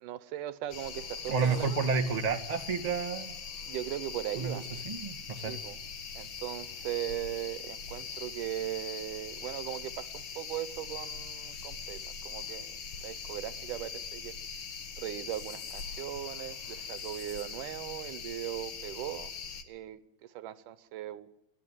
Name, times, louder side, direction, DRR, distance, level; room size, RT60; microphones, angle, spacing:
voice 1, 0.0-2.0 3.7-4.7 5.4-5.8 6.2-12.7 13.0-14.4 15.0-19.3 19.7-21.3, right 13 dB, 85° right, 2.6 m, -39 dB
sound 1, 0.7-19.6, left 5 dB, 45° left, 2.1 m, -42 dB
voice 2, 1.3-3.3 4.3-5.5, right 5 dB, 15° right, 1.4 m, -31 dB
30.0 x 12.0 x 9.2 m
omnidirectional pair, 3.6 m